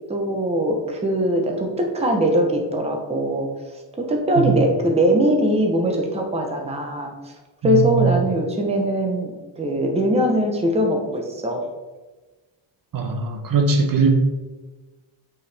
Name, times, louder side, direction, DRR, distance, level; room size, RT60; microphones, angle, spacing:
voice 1, 0.1-3.5 4.0-7.3 7.6-11.6, equal, 15° right, 2 dB, 0.8 m, -21 dB
voice 2, 7.6-8.1 12.9-14.1, right 5 dB, 45° right, 4 dB, 0.8 m, -20 dB
8.2 x 4.7 x 3.4 m, 1.2 s
wide cardioid pair, 160°, 47 cm